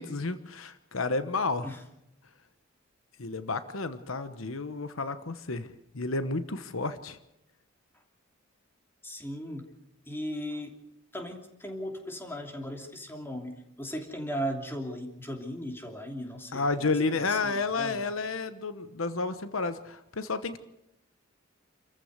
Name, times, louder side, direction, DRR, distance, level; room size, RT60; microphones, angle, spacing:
voice 1, 0.0-1.7 3.2-5.7 5.9-7.2 16.5-20.6, left 3 dB, 80° left, 11 dB, 1.1 m, -31 dB
voice 2, 9.0-9.7 10.1-10.7 11.1-16.9 17.2-18.0, equal, 10° left, 3 dB, 2.9 m, -37 dB
29.0 x 14.5 x 6.7 m, 0.84 s
head